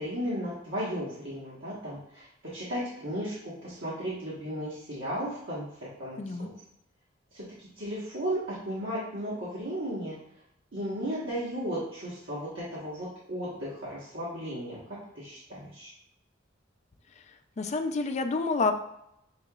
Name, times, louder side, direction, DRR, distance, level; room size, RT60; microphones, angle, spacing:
voice 1, 0.0-2.3 2.5-6.3 7.3-7.4 7.8-10.1 10.7-14.8 15.1-15.9, equal, 70° right, -10 dB, 1.3 m, -35 dB
voice 2, 6.2-6.5 17.6-18.7, left 3 dB, 35° left, 7 dB, 0.4 m, -28 dB
6.4 x 2.9 x 2.3 m, 0.79 s
head